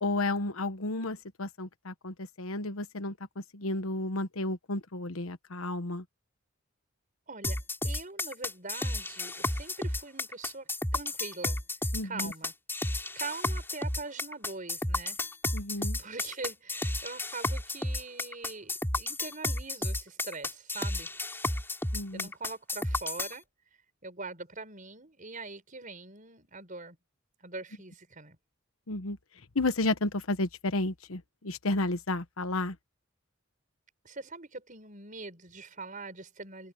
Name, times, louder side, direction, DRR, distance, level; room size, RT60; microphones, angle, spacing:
voice 1, 0.0-3.1 3.5-6.0 11.9-12.3 15.5-16.0 21.9-22.3 28.9-29.2 29.5-32.7, left 2 dB, 90° left, 1.2 m, -32 dB
voice 2, 7.3-11.6 12.0-12.5 12.8-15.2 16.0-21.1 22.1-23.4 24.0-27.0 27.4-28.4 34.0-36.7, right 3 dB, 40° right, 6.2 m, -43 dB
sound 1, 7.4-23.4, left 2 dB, 10° left, 5.2 m, -32 dB
head